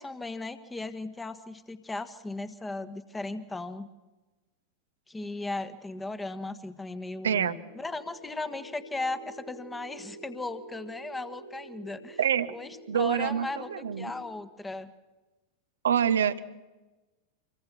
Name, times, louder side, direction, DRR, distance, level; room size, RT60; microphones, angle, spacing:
voice 1, 0.0-3.9 5.1-12.2 12.5-13.7 14.0-14.9, left 2 dB, 10° left, 11 dB, 1.5 m, -37 dB
voice 2, 7.2-7.6 12.2-12.5 12.9-14.1 15.8-16.4, right 8 dB, 65° right, 11 dB, 0.9 m, -26 dB
sound 1, 7.5-14.3, right 2 dB, 80° left, 6.7 m, -48 dB
26.0 x 22.0 x 6.2 m, 1.1 s
figure-of-eight pair, 90°, 0 cm